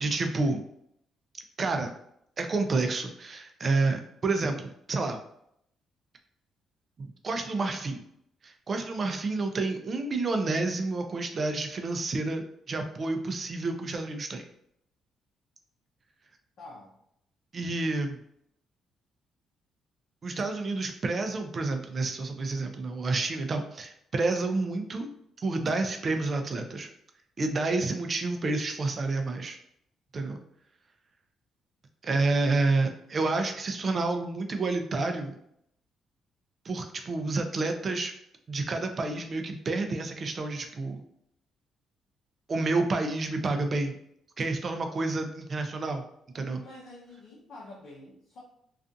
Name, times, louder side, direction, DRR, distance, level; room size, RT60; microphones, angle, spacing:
voice 1, 0.0-0.6 1.6-1.9 2.4-5.2 7.0-8.0 8.4-14.4 17.5-18.2 20.2-25.1 25.4-26.9 27.4-29.6 30.1-30.4 32.0-35.3 36.6-38.1 38.5-41.0 42.5-44.0 44.4-46.0 46.3-46.6, right 3 dB, 40° right, 5 dB, 0.4 m, -29 dB
voice 2, 16.6-17.0 46.6-48.4, left 2 dB, 70° left, -6 dB, 0.6 m, -47 dB
2.4 x 2.4 x 2.5 m, 0.74 s
cardioid pair, 90°, 0 cm